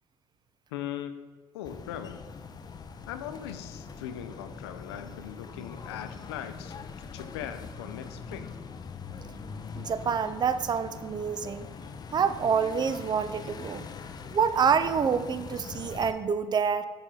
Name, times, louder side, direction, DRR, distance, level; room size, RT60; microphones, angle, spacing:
voice 1, 0.7-1.2 1.5-2.2 3.1-8.5, left 10 dB, 90° left, 10 dB, 0.4 m, -40 dB
sound 1, 1.6-16.1, left 5 dB, 30° left, 0.5 m, -42 dB
voice 2, 9.8-11.7 12.1-13.9 14.3-16.9, right 6 dB, 35° right, 13 dB, 0.4 m, -27 dB
6.8 x 4.2 x 3.7 m, 1.5 s
hypercardioid pair, 70°, 13 cm